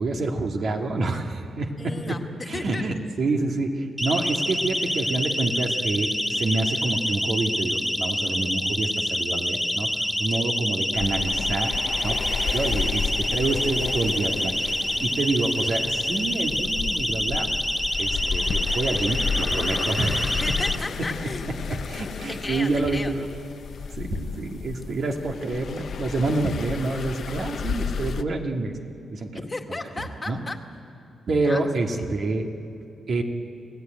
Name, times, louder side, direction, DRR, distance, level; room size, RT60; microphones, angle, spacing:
voice 1, 0.0-2.1 2.5-9.9 10.2-11.7 12.0-17.5 18.0-20.4 21.0-21.1 21.7-23.3 23.9-28.7 29.1-29.3 29.7-29.8 30.2-30.4 31.3-32.5 33.1-33.2, right 2 dB, 55° right, 2 dB, 2.2 m, -27 dB
voice 2, 1.8-2.8 10.3-10.5 20.3-21.6 22.3-23.1 29.3-31.0 31.4-31.6, left 2 dB, 20° left, 4 dB, 1.9 m, -35 dB
Siren, 4.0-20.7, equal, ahead, 0.7 m, -27 dB
sound 1, 10.9-28.2, left 6 dB, 60° left, 0.7 m, -32 dB
29.5 x 17.0 x 9.2 m, 2.7 s
cardioid pair, 110°, 0 cm